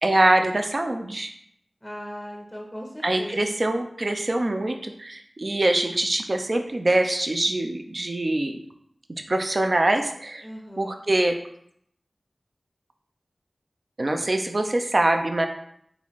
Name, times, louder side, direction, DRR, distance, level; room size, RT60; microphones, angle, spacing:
voice 1, 0.0-1.3 3.0-8.6 9.1-10.5 10.8-11.4 14.0-15.5, right 1 dB, 55° right, 5 dB, 0.4 m, -24 dB
voice 2, 1.8-3.6 10.4-11.0, equal, 10° left, 0 dB, 0.6 m, -38 dB
4.0 x 2.5 x 3.0 m, 0.70 s
cardioid pair, 40°, 0 cm